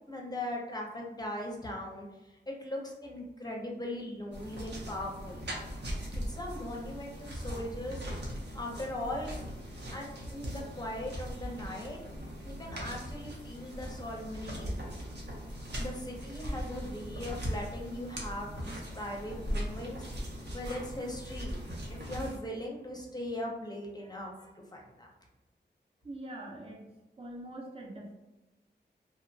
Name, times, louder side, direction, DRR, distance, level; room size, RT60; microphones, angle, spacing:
voice 1, 0.1-5.5 6.1-9.3 9.9-12.0 12.4-14.8 15.8-21.6 21.9-25.1, left 1 dB, 20° left, -1 dB, 0.6 m, -40 dB
sound 1, 4.3-22.4, equal, 70° right, 0.7 m, -39 dB
voice 2, 26.0-26.8 27.2-28.1, right 1 dB, 30° right, -2 dB, 0.5 m, -43 dB
2.8 x 2.1 x 2.6 m, 1.1 s
wide cardioid pair, 70°, 18 cm